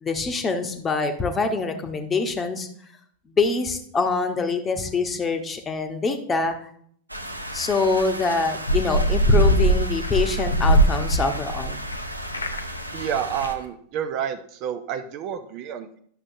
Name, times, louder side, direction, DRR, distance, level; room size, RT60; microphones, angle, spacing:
voice 1, 0.0-2.7 3.3-6.6 7.5-11.8, left 4 dB, 20° left, 6 dB, 1.0 m, -25 dB
sound 1, 7.1-13.5, equal, 85° right, 0.6 m, -35 dB
sound 2, 8.7-12.0 12.2-12.8 13.1-13.2 13.4-13.5, right 1 dB, 80° left, 0.7 m, -20 dB
voice 2, 12.9-16.0, right 9 dB, 40° right, 9 dB, 0.5 m, -29 dB
11.0 x 6.2 x 2.7 m, 0.62 s
figure-of-eight pair, 90°, 0 cm